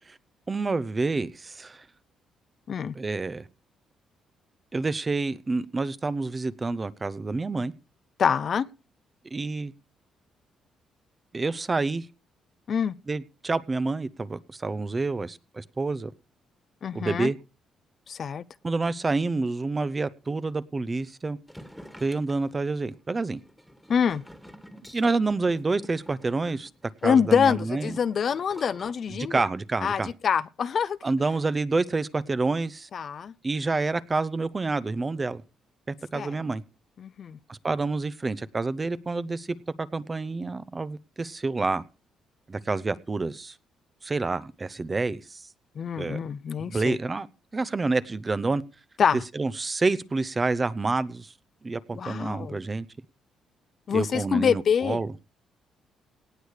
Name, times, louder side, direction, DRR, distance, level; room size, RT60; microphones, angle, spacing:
voice 1, 0.5-1.8 2.9-3.5 4.7-7.7 9.3-9.7 11.3-12.1 13.1-16.1 16.9-17.4 18.6-21.4 22.0-23.4 24.9-26.7 27.0-28.0 29.1-30.1 31.0-32.9 33.4-35.4 35.9-36.6 37.5-41.8 42.5-43.5 44.0-45.5 46.0-46.2 46.7-47.3 47.5-48.6 49.3-51.3 51.6-52.9 53.9-55.1, right 3 dB, 25° right, 0.7 m, -28 dB
voice 2, 8.2-8.7 12.7-12.9 16.8-17.3 18.1-18.4 23.9-24.2 27.0-29.4 29.8-31.0 32.9-33.3 36.1-36.3 37.0-37.4 45.8-47.0 49.0-49.2 51.9-52.6 53.9-55.0, left 7 dB, 55° left, 0.5 m, -25 dB
sound 1, 21.5-28.9, equal, ahead, 1.7 m, -49 dB
18.0 x 6.3 x 5.0 m
cardioid pair, 90°, 0 cm